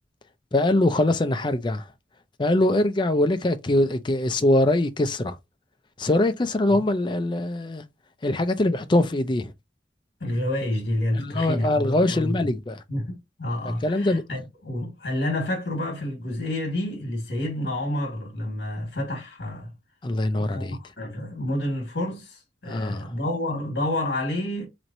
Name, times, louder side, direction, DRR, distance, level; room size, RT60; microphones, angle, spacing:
voice 1, 0.5-1.8 2.4-5.4 6.0-7.8 8.2-9.5 11.2-12.8 13.8-14.2 20.0-20.8 22.6-23.1, left 1 dB, 25° left, 0.4 m, -23 dB
voice 2, 10.2-12.5 12.9-19.7 20.5-24.7, left 1 dB, 65° left, 1.4 m, -29 dB
4.1 x 3.1 x 2.6 m
head